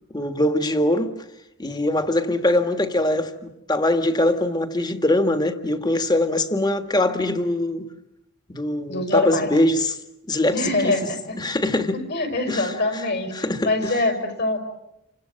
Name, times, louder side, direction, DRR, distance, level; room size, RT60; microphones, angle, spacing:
voice 1, 0.1-1.1 1.6-7.9 8.5-10.0 10.3-11.1 11.4-12.0 12.5-13.0 13.3-14.0, left 1 dB, 20° left, 1.7 m, -22 dB
voice 2, 8.9-9.5 10.5-11.4 12.1-13.3 13.6-14.6, left 2 dB, 55° left, 5.9 m, -23 dB
29.5 x 25.5 x 7.6 m
head